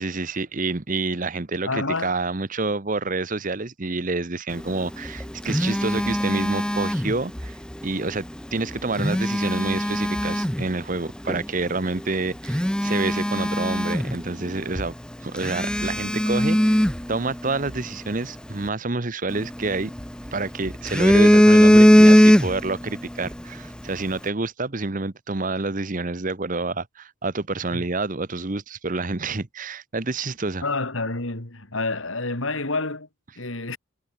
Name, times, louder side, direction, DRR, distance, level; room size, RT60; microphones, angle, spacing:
voice 1, 0.0-7.6 7.8-14.9 15.2-16.8 17.1-19.9 20.3-30.6, right 3 dB, 40° right, 1.0 m, -28 dB
voice 2, 1.6-2.1 27.7-27.8 30.6-33.1 33.4-33.8, left 3 dB, 75° left, 3.2 m, -28 dB
Telephone, 4.9-7.5 8.8-10.7 11.3-11.4 12.0-12.1 12.4-14.5 14.8-14.9 15.4-17.8 19.3-20.3 20.7-22.8 23.1-23.3, equal, 5° left, 0.7 m, -18 dB
head